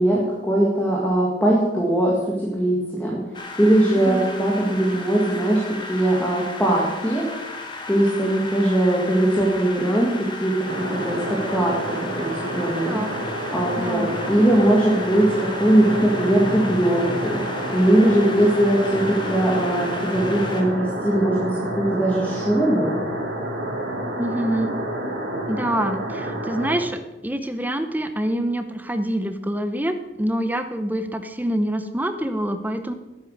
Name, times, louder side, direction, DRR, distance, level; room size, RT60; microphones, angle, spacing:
voice 1, 0.0-3.2 3.6-5.6 5.9-7.3 7.9-13.0 13.5-17.4 17.7-23.0, right 1 dB, 10° left, -4 dB, 1.8 m, -20 dB
sound 1, 3.3-20.6, left 2 dB, 25° left, 1.4 m, -35 dB
voice 2, 4.0-4.3 12.9-13.1 13.8-14.2 24.2-24.8 25.5-32.9, right 1 dB, 10° right, 8 dB, 0.7 m, -26 dB
sound 2, 10.7-26.8, right 1 dB, 70° right, 2.9 m, -29 dB
10.0 x 8.1 x 6.4 m, 1.1 s
head